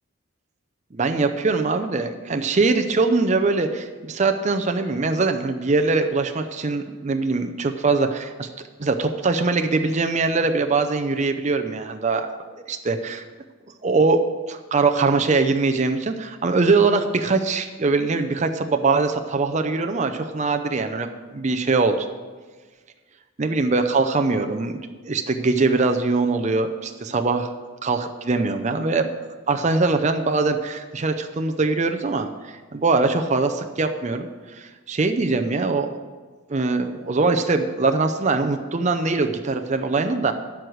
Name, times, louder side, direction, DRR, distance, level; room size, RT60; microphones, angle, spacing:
voice 1, 0.9-8.5 8.8-12.3 12.7-13.2 13.8-14.2 14.5-21.1 21.3-22.1 23.4-24.8 25.0-27.5 27.8-36.0 36.5-40.3, right 3 dB, 35° right, 6 dB, 0.6 m, -22 dB
12.5 x 4.7 x 7.8 m, 1.4 s
head